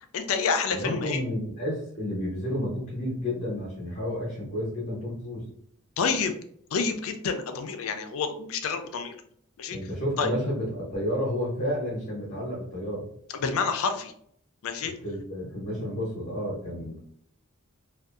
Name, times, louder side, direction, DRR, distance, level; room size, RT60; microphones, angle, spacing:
voice 1, 0.1-1.2 6.0-6.4 6.7-9.2 9.6-9.8 10.2-10.3 13.3-14.1 14.6-14.9, left 5 dB, 65° left, 7 dB, 0.4 m, -28 dB
voice 2, 0.7-5.4 9.7-13.0 15.0-17.0, equal, 40° left, -5 dB, 0.7 m, -31 dB
2.6 x 2.2 x 2.4 m, 0.65 s
head